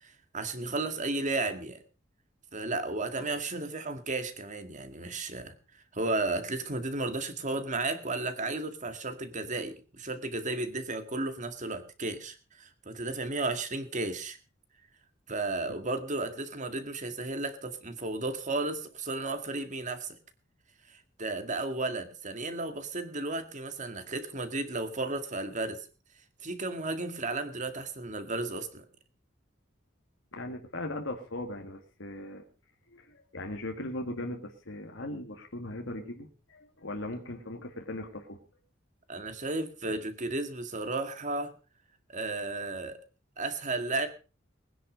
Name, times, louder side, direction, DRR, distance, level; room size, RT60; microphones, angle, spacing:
voice 1, 0.0-1.8 2.5-5.5 5.9-14.4 15.3-20.2 20.9-25.9 26.4-28.8 39.1-41.5 42.1-43.0 43.4-44.1, right 2 dB, 40° right, 9 dB, 2.0 m, -34 dB
voice 2, 30.3-32.4 32.9-38.4, left 1 dB, 85° left, 3 dB, 2.1 m, -39 dB
20.5 x 10.0 x 5.2 m, 0.35 s
head